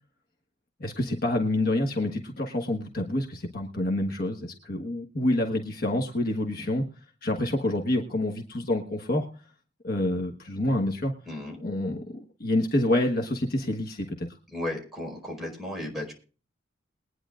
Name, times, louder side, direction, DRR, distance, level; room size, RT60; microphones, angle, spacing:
voice 1, 0.8-6.8 7.2-9.3 9.8-11.1 11.6-14.3, left 1 dB, 50° left, 2 dB, 1.4 m, -27 dB
voice 2, 11.2-11.6 14.5-16.1, left 1 dB, ahead, -2 dB, 4.8 m, -34 dB
22.0 x 9.8 x 2.5 m, 0.38 s
head